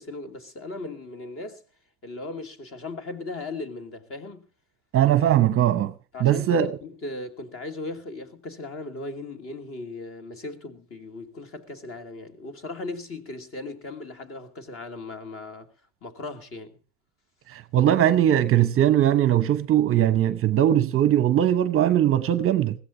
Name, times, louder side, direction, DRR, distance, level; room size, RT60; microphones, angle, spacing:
voice 1, 0.0-1.6 2.0-4.5 6.1-15.7 16.0-16.8, left 2 dB, 30° left, 2.7 m, -37 dB
voice 2, 4.9-5.9 6.2-6.8 17.5-22.8, right 11 dB, 30° right, 0.8 m, -20 dB
21.0 x 16.0 x 2.8 m
supercardioid pair, 110°, 41 cm